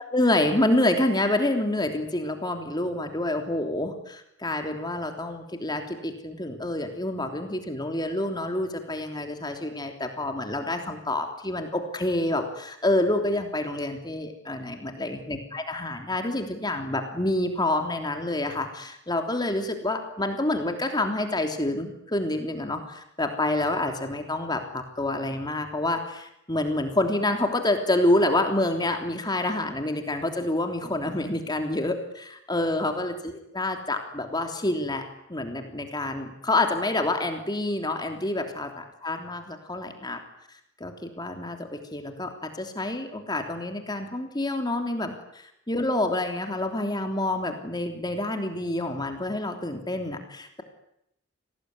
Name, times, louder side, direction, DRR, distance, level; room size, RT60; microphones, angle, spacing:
voice 1, 0.1-35.0 35.3-40.2 40.8-50.6, left 1 dB, 20° left, 5 dB, 3.3 m, -28 dB
29.0 x 19.5 x 9.7 m, 0.78 s
head